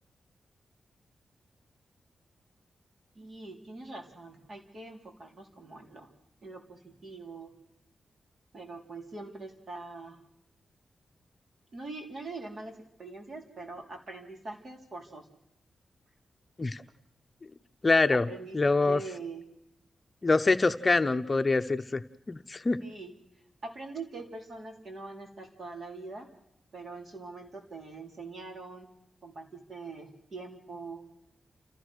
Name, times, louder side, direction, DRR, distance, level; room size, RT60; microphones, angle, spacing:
voice 1, 3.2-6.1 6.4-7.5 8.5-10.2 11.7-15.2 18.1-18.6 18.9-19.4 22.8-23.1 23.6-26.3 26.7-28.9 29.2-31.1, right 3 dB, 50° right, 2 dB, 4.0 m, -43 dB
voice 2, 17.8-18.3 18.5-19.0 20.2-22.0 22.3-22.8, left 3 dB, 30° left, 9 dB, 0.7 m, -24 dB
29.0 x 15.0 x 6.4 m, 0.79 s
wide cardioid pair, 105°, 0 cm